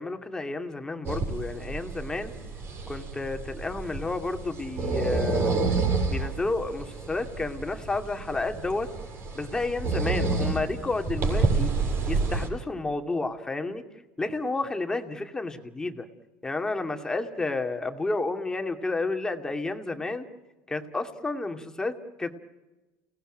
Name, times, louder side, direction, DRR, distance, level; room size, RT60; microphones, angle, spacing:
voice 1, 0.0-2.3 2.9-5.5 6.1-8.9 9.3-11.7 12.1-13.8 14.2-16.1 16.4-20.3 20.7-22.4, left 3 dB, 10° left, 6 dB, 2.4 m, -31 dB
sound 1, 1.0-12.5, right 3 dB, 45° right, 7.1 m, -29 dB
30.0 x 18.5 x 9.1 m, 1.1 s
supercardioid pair, 115°, 5 cm